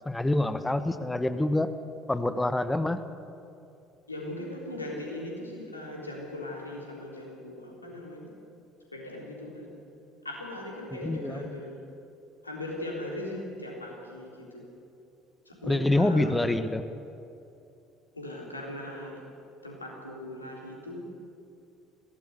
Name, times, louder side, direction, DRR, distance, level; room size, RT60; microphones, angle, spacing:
voice 1, 0.0-1.7 2.1-3.0 11.0-11.4 15.7-16.8, left 1 dB, 10° left, 11 dB, 1.1 m, -26 dB
voice 2, 4.1-8.3 8.9-9.7 10.2-11.8 12.4-14.7 15.5-16.4 18.1-19.2 19.6-21.2, left 1 dB, 90° left, -1 dB, 3.8 m, -39 dB
22.0 x 17.5 x 8.1 m, 2.7 s
figure-of-eight pair, 60°, 0 cm